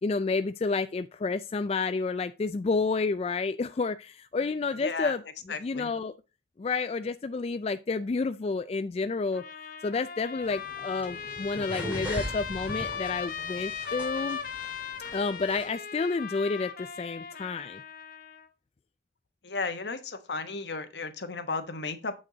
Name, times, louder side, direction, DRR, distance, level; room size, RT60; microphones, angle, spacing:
voice 1, 0.0-5.2 5.6-6.1 6.6-9.4 9.8-14.4 15.1-17.8, left 4 dB, 35° left, 0.3 m, -30 dB
voice 2, 4.8-5.2 5.5-5.9 19.4-22.1, left 4 dB, 75° left, 1.2 m, -34 dB
Trumpet, 9.3-18.5, left 6 dB, 50° left, 1.0 m, -38 dB
sound 1, 10.4-15.7, equal, 10° right, 2.8 m, -40 dB
7.6 x 6.4 x 3.9 m
head